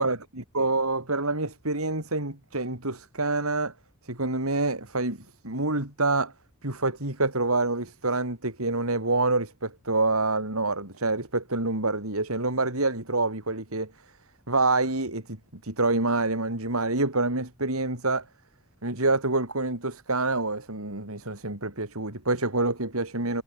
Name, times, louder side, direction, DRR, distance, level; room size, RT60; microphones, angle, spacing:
voice 1, 0.5-3.7 4.0-6.3 6.6-13.9 14.5-15.4 15.6-18.2 18.8-23.4, right 2 dB, 90° right, 5.1 m, -27 dB
head